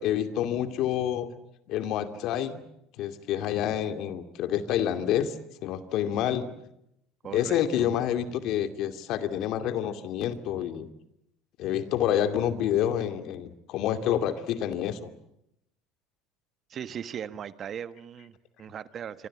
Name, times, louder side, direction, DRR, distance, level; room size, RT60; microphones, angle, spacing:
voice 1, 0.0-1.3 1.7-2.6 3.0-5.3 5.6-6.5 7.3-10.9 11.6-15.1, left 10 dB, 60° left, 9 dB, 2.4 m, -28 dB
voice 2, 7.2-7.9 16.7-19.3, right 8 dB, 40° right, 13 dB, 1.4 m, -38 dB
26.0 x 25.0 x 8.7 m, 0.81 s
supercardioid pair, 100°, 0 cm